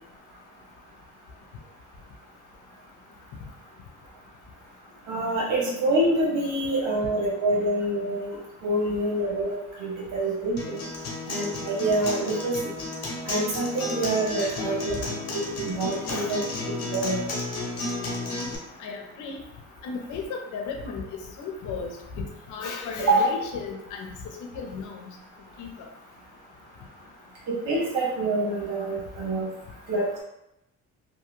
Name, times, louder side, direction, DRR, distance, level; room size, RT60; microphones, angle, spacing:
voice 1, 5.1-8.4 8.6-10.8 11.3-12.7 13.2-16.4 16.9-17.2 23.1-23.3 27.7-29.5 29.9-30.2, right 2 dB, 85° right, -4 dB, 1.0 m, -26 dB
Acoustic guitar, 10.6-18.6, left 3 dB, 55° left, 1.0 m, -32 dB
voice 2, 18.8-19.4 19.8-21.0 21.4-21.9 22.1-25.1 25.6-25.7, left 5 dB, 80° left, 2 dB, 0.6 m, -35 dB
2.6 x 2.3 x 3.1 m, 0.87 s
cardioid pair, 90°, 30 cm